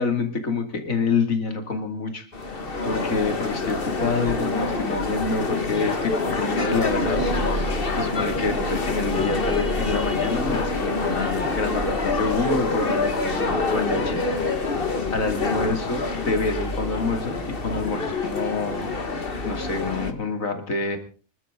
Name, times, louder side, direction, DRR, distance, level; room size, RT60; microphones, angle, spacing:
voice 1, 0.0-21.0, left 3 dB, 80° left, 6 dB, 3.0 m, -27 dB
sound 1, 2.3-20.1, left 3 dB, 45° left, 1.9 m, -26 dB
sound 2, 6.8-18.9, right 1 dB, 90° right, 4.8 m, -35 dB
26.5 x 12.5 x 3.8 m, 0.36 s
omnidirectional pair, 1.4 m